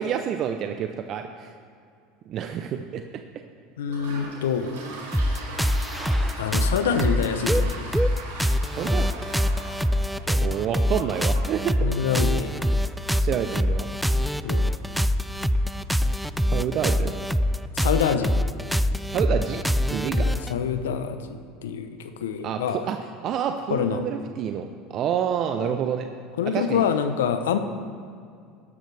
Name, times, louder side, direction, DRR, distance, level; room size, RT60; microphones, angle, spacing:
voice 1, 0.0-1.5 2.3-3.0 8.7-9.1 10.2-11.8 13.2-13.9 16.5-17.1 19.0-19.6 19.9-20.3 22.4-26.1 26.4-26.8, right 8 dB, 50° right, 6 dB, 0.6 m, -28 dB
voice 2, 3.8-4.7 6.3-7.9 11.8-12.7 14.4-14.7 17.8-18.3 20.2-21.2 21.6-22.8 23.7-24.0 25.6-25.8 26.4-27.6, left 7 dB, 90° left, 9 dB, 0.7 m, -26 dB
Toilet flush, 3.8-17.2, right 2 dB, 85° right, 2.8 m, -42 dB
sound 1, 5.1-20.5, equal, ahead, 0.4 m, -24 dB
13.0 x 11.0 x 3.4 m, 2.3 s
hypercardioid pair, 95°, 0 cm